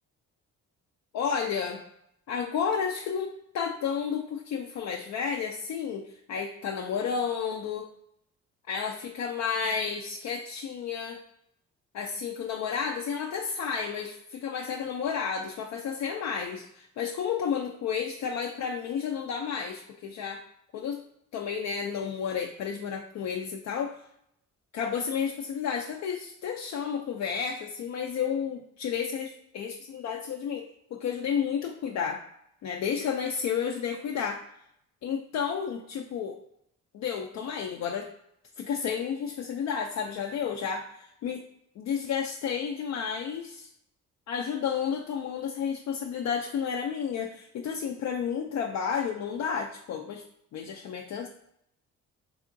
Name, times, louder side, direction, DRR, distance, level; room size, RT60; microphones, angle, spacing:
voice 1, 1.1-1.8 2.3-7.9 8.7-11.2 11.9-20.4 20.7-21.0 21.3-24.0 24.7-30.7 30.9-32.2 32.6-34.4 35.0-36.4 36.9-38.1 38.6-41.4 41.8-43.7 44.3-50.2 50.5-51.3, left 7 dB, 65° left, 2 dB, 0.4 m, -31 dB
3.7 x 3.5 x 2.5 m, 0.76 s
cardioid pair, 90°, 30 cm